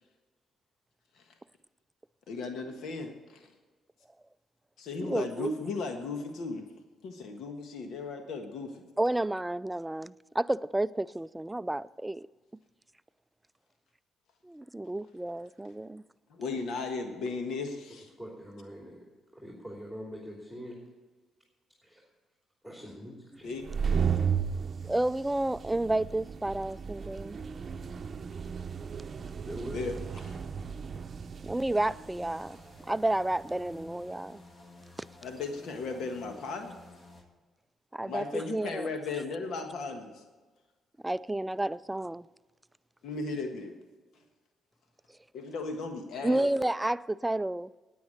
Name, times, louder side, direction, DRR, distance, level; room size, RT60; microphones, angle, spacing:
voice 1, 2.3-3.5 4.8-6.7 7.0-8.8 16.3-18.1 23.4-23.9 29.7-30.0 30.2-30.4 35.2-36.7 38.1-40.2 43.0-43.7 45.3-46.5, left 3 dB, 75° left, 1.4 m, -36 dB
voice 2, 5.0-5.5 9.0-12.3 14.4-16.0 24.8-27.4 31.4-32.6 32.8-34.4 37.9-38.9 41.0-42.3 46.2-47.7, right 1 dB, 10° right, 0.3 m, -31 dB
voice 3, 17.9-19.0 19.3-20.8 21.8-22.0 22.6-23.5 29.4-29.9, equal, 10° left, 2.9 m, -43 dB
sound 1, 23.5-34.0, right 7 dB, 45° right, 0.7 m, -35 dB
sound 2, 31.7-37.2, left 2 dB, 40° left, 2.3 m, -53 dB
9.6 x 9.4 x 8.8 m
cardioid pair, 90°, 0 cm